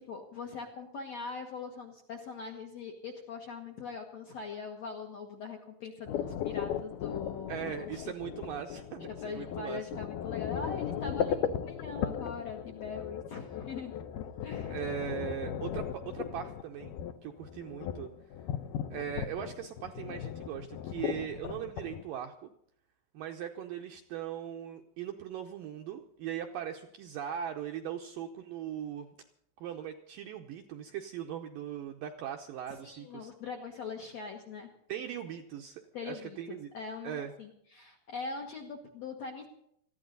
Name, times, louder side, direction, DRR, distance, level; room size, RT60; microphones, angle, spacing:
voice 1, 0.0-8.1 9.2-13.9 14.4-14.7 32.8-34.7 35.9-39.5, left 5 dB, 65° left, 1 dB, 1.7 m, -42 dB
sound 1, 6.1-22.0, left 9 dB, 85° left, 1.8 m, -37 dB
voice 2, 7.5-9.9 14.7-17.0 17.2-18.1 18.9-22.5 23.1-29.1 29.6-33.3 34.9-36.7 37.0-37.3, right 9 dB, 80° right, 4 dB, 2.1 m, -39 dB
20.0 x 14.5 x 4.0 m, 0.71 s
omnidirectional pair, 4.9 m